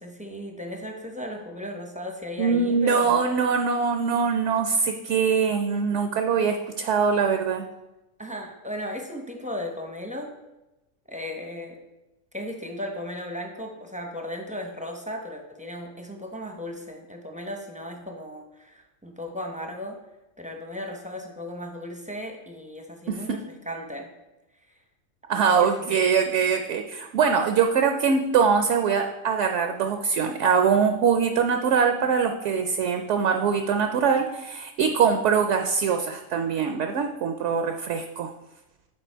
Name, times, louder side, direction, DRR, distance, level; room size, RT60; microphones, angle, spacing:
voice 1, 0.0-3.3 8.2-10.3 11.1-11.8 12.3-20.0 20.4-23.4 23.7-24.1 24.6-24.7 25.3-26.0, left 1 dB, 10° right, 1 dB, 0.5 m, -36 dB
voice 2, 2.4-7.6 23.1-23.4 25.3-38.3, right 6 dB, 70° right, 6 dB, 0.8 m, -23 dB
7.6 x 4.5 x 4.5 m, 1.0 s
omnidirectional pair, 1.4 m